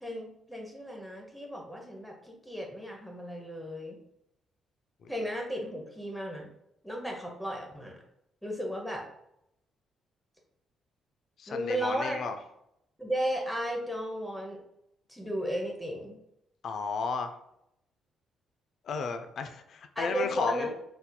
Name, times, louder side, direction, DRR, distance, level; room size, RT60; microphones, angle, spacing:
voice 1, 0.0-4.0 5.1-6.5 6.8-8.0 8.4-9.0 11.5-12.2 13.0-14.6 15.1-16.2 20.0-20.7, equal, 5° left, 0 dB, 0.6 m, -34 dB
voice 2, 11.4-12.4 16.6-17.4 18.8-20.7, left 5 dB, 60° left, 8 dB, 0.3 m, -33 dB
4.1 x 2.7 x 2.2 m, 0.80 s
cardioid pair, 90°, 0 cm